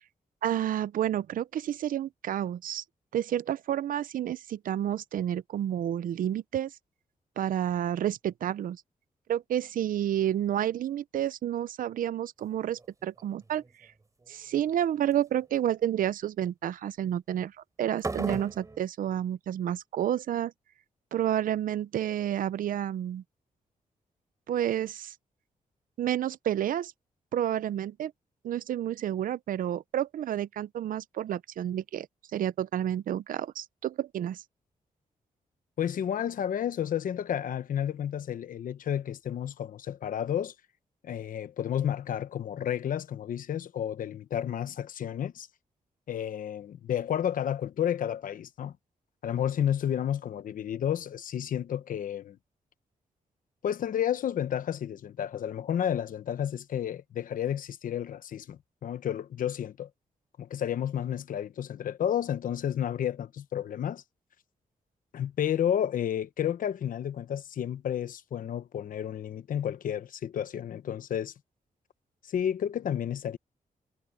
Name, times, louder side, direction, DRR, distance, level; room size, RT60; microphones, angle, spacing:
voice 1, 0.4-2.8 3.1-6.7 7.4-8.8 9.3-13.6 14.3-17.5 17.8-20.5 21.1-23.2 24.5-25.1 26.0-26.9 27.3-28.1 28.4-32.1 32.3-34.4, right 11 dB, 85° right, 0.6 m, -30 dB
sound 1, 12.5-12.9 13.2-13.7 14.3-14.7 15.1-15.3 17.9-18.8, right 3 dB, 25° right, 3.9 m, -35 dB
voice 2, 35.8-40.5 41.0-45.5 46.1-48.8 49.2-52.4 53.6-59.9 60.4-64.0 65.1-71.3 72.3-73.4, left 9 dB, 80° left, 1.0 m, -31 dB
wide cardioid pair, 125°, 14 cm